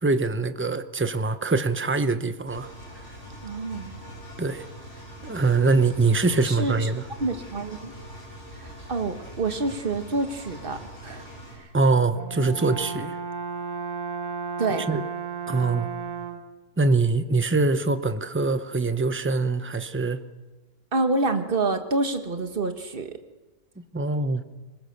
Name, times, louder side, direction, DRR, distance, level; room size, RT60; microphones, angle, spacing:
voice 1, 0.0-2.7 4.4-4.7 5.2-7.0 11.7-13.2 14.9-15.0 15.5-15.9 16.8-20.2 23.9-24.4, right 3 dB, 15° right, 0.5 m, -23 dB
Engine, 2.5-11.5, equal, 30° left, 7.9 m, -43 dB
voice 2, 3.4-4.0 6.4-6.9 7.2-7.9 8.6-11.3 11.6-11.7 14.6-14.9 20.9-23.2, right 3 dB, 35° right, 1.5 m, -27 dB
Brass instrument, 12.2-16.6, right 5 dB, 75° right, 1.9 m, -33 dB
24.5 x 21.0 x 6.8 m
omnidirectional pair, 1.7 m